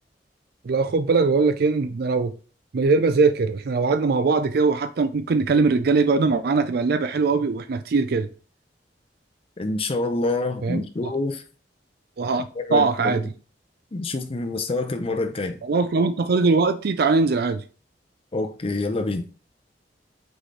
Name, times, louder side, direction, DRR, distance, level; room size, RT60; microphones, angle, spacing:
voice 1, 0.6-2.3 2.7-8.3 10.6-11.1 12.2-12.5 12.7-13.2 15.6-17.6, right 4 dB, 60° right, 0.4 m, -21 dB
voice 2, 9.6-11.4 12.6-13.2 13.9-15.6 18.3-19.2, left 2 dB, 35° left, 0.6 m, -26 dB
6.2 x 4.9 x 3.2 m
head